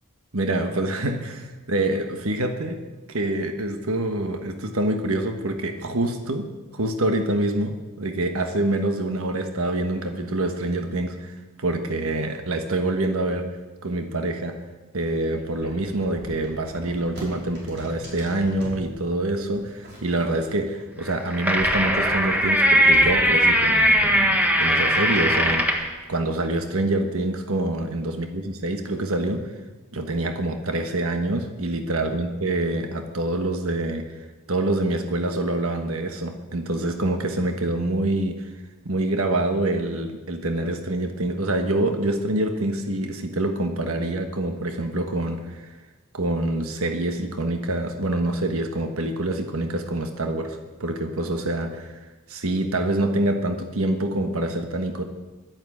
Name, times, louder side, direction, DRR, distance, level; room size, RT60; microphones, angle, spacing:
voice 1, 0.3-2.8 3.1-6.5 6.7-13.5 13.8-14.6 14.9-25.8 26.1-29.5 29.9-34.2 34.5-38.5 38.8-45.8 46.1-55.0, right 1 dB, 70° right, 6 dB, 1.3 m, -26 dB
sound 1, 14.9-18.8 19.5-20.8 21.1-25.2, equal, 55° right, 5.3 m, -41 dB
sound 2, 21.1-25.9, equal, 5° right, 1.6 m, -19 dB
12.0 x 11.0 x 8.7 m, 1.2 s
head